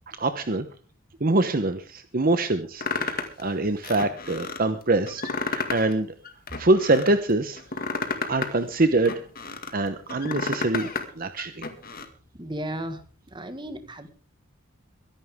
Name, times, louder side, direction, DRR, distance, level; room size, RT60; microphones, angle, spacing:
voice 1, 0.1-0.7 1.2-6.1 6.6-7.6 8.3-9.1 9.7-11.6, right 2 dB, 45° right, 9 dB, 0.9 m, -24 dB
sound 1, 2.8-3.4 3.8-4.6 5.1-5.9 6.2-7.1 7.6-9.7 10.1-11.1 11.4-12.1, left 4 dB, 45° left, 2.0 m, -31 dB
voice 2, 12.4-13.0 13.3-14.1, right 1 dB, 20° right, 9 dB, 1.6 m, -34 dB
23.0 x 11.0 x 3.6 m, 0.39 s
head